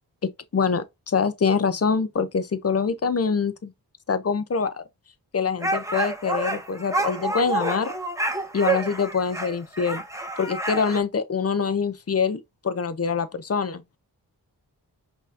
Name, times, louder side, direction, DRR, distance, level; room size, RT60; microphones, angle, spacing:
voice 1, 0.2-3.7 4.1-4.8 5.3-7.9 8.5-10.0 10.4-13.8, left 5 dB, 40° left, 0.6 m, -25 dB
sound 1, 5.6-11.0, right 2 dB, 10° right, 0.9 m, -28 dB
5.3 x 2.7 x 2.5 m
cardioid pair, 55°, 40 cm